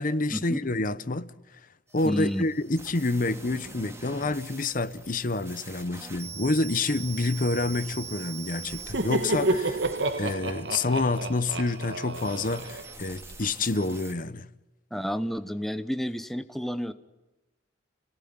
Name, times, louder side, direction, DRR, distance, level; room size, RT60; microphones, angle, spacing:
voice 1, 0.0-1.3 1.9-9.8 10.2-14.5, left 2 dB, 45° left, 0.9 m, -28 dB
sound 1, 1.9-14.1, right 5 dB, 15° right, 2.4 m, -44 dB
voice 2, 2.0-2.4 14.9-16.9, equal, ahead, 0.9 m, -30 dB
Laughter, 8.7-13.4, right 2 dB, 60° right, 1.6 m, -30 dB
29.0 x 18.5 x 9.6 m
head